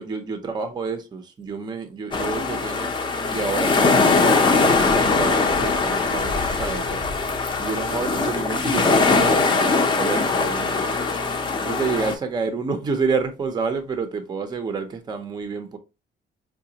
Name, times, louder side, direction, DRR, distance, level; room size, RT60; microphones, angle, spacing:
voice 1, 0.0-2.9 3.3-7.0 7.6-10.7 11.6-15.8, right 4 dB, 20° right, 0.5 m, -29 dB
sound 1, 2.1-12.1, left 3 dB, 25° left, 0.5 m, -21 dB
4.8 x 2.2 x 2.7 m
cardioid pair, 145°, 20 cm